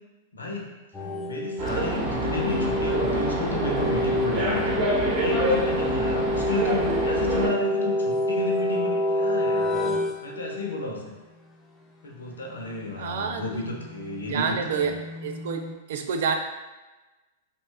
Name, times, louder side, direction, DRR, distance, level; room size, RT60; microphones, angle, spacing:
voice 1, 0.3-0.7 1.3-4.8 5.2-11.1 12.0-15.0, left 2 dB, 85° left, 0 dB, 0.5 m, -32 dB
sound 1, 0.9-10.9 13.1-15.7, left 1 dB, 10° left, 0.4 m, -28 dB
sound 2, 1.6-7.5, right 1 dB, 40° right, 0.8 m, -26 dB
voice 2, 13.0-13.6 14.3-14.9 15.2-16.4, right 6 dB, 65° right, 5 dB, 0.3 m, -28 dB
2.7 x 2.2 x 3.3 m, 1.1 s
hypercardioid pair, 110°, 0 cm